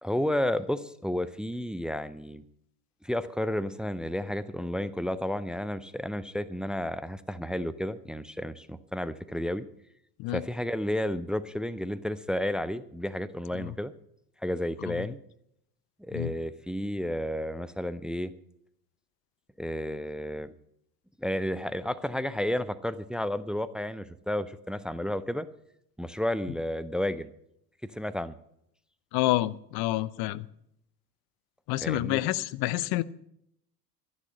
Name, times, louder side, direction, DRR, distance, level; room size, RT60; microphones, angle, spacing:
voice 1, 0.0-2.4 3.0-9.6 10.3-13.9 14.4-15.2 16.0-18.3 19.6-20.5 21.2-25.5 26.0-27.3 27.9-28.3 31.8-32.2, left 1 dB, ahead, 14 dB, 0.4 m, -32 dB
voice 2, 29.1-30.5 31.7-33.0, left 17 dB, 50° left, 17 dB, 0.8 m, -28 dB
12.5 x 11.0 x 6.3 m, 0.75 s
figure-of-eight pair, 70°, 48 cm